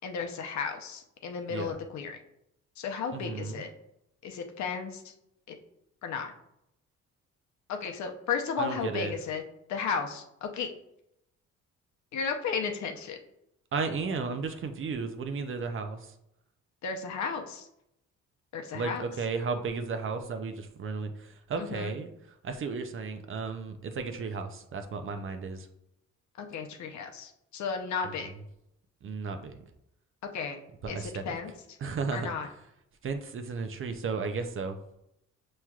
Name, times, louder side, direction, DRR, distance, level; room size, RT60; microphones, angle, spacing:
voice 1, 0.0-2.2 2.8-3.7 4.2-5.1 5.5-5.6 6.0-6.3 7.7-9.4 9.7-10.7 12.1-13.2 16.8-17.7 18.5-19.0 21.6-21.9 26.4-28.3 30.3-30.6 30.9-31.5 32.1-32.5, left 6 dB, 65° left, 4 dB, 0.7 m, -34 dB
voice 2, 3.1-3.6 8.6-9.1 13.7-16.1 18.7-22.1 22.4-25.7 28.0-28.3 29.0-29.6 30.8-31.4 31.8-32.3 33.0-34.8, right 4 dB, 45° right, 7 dB, 0.5 m, -34 dB
5.8 x 3.1 x 2.3 m, 0.81 s
cardioid pair, 90°, 30 cm